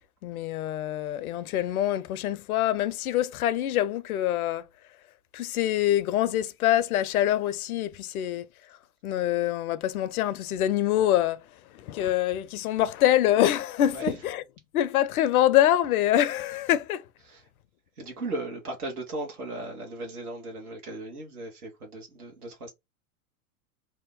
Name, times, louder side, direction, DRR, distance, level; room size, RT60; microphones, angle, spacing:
voice 1, 0.2-4.7 5.3-8.8 9.0-14.4 14.7-17.1, left 12 dB, 75° left, 0.5 m, -25 dB
voice 2, 18.0-22.7, right 2 dB, 85° right, 1.1 m, -36 dB
2.7 x 2.1 x 3.5 m
figure-of-eight pair, 90°, 44 cm